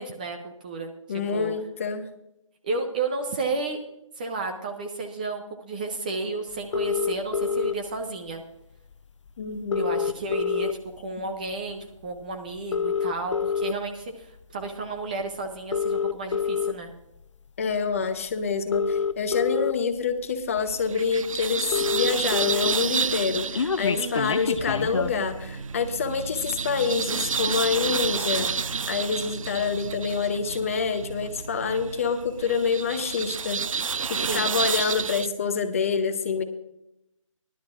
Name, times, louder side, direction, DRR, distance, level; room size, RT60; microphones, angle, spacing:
voice 1, 0.0-1.5 2.6-3.8 4.2-8.4 9.8-10.7 11.0-16.9 23.9-24.4 34.3-34.6, right 3 dB, 15° right, 4 dB, 0.5 m, -32 dB
voice 2, 1.1-2.1 9.4-9.8 17.6-33.6 34.1-36.4, left 5 dB, 25° left, 9 dB, 0.7 m, -27 dB
sound 1, 6.7-7.7 8.9-9.0 9.3-9.4 9.6-11.0 11.5-11.7 12.6-13.7 14.4-14.7 15.6-16.7 17.9-18.0 18.5-19.7 20.4-20.5 20.8-20.9 21.1-21.2 21.4-22.7 23.0-25.2, left 6 dB, 60° left, 0.6 m, -26 dB
sound 2, 20.6-35.3, right 6 dB, 80° right, 0.4 m, -31 dB
sound 3, 24.6-32.0, right 4 dB, 55° right, 0.9 m, -40 dB
19.0 x 11.5 x 2.4 m, 0.85 s
figure-of-eight pair, 160°, 17 cm